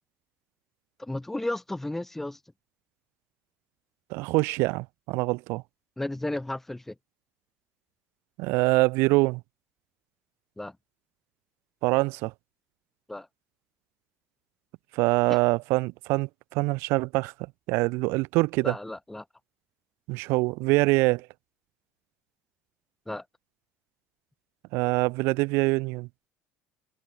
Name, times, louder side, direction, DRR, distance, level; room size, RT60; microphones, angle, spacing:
voice 1, 1.0-2.4 6.0-6.9 10.6-10.7 13.1-13.3 15.3-15.4 18.6-19.2 23.1-23.2, left 1 dB, 5° left, 0.8 m, -33 dB
voice 2, 4.1-5.6 8.4-9.4 11.8-12.3 14.9-17.3 17.7-18.8 20.1-21.3 24.7-26.1, right 24 dB, 75° right, 0.4 m, -24 dB
cardioid pair, 135°, 4 cm